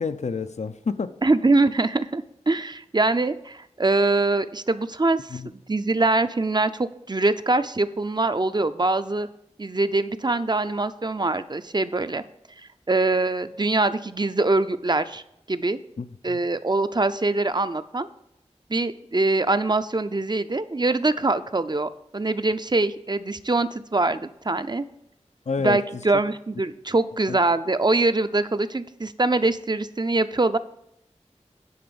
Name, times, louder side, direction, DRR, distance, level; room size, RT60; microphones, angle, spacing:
voice 1, 0.0-1.1 5.3-5.5 16.0-16.4 25.5-26.0 27.3-27.4, left 5 dB, 70° left, 11 dB, 0.5 m, -29 dB
voice 2, 1.2-9.3 9.6-12.2 12.9-15.2 15.5-15.8 16.2-18.1 18.7-24.8 25.6-30.6, right 2 dB, 35° right, 11 dB, 0.5 m, -23 dB
9.5 x 4.0 x 6.9 m, 0.78 s
wide cardioid pair, 45°, 12 cm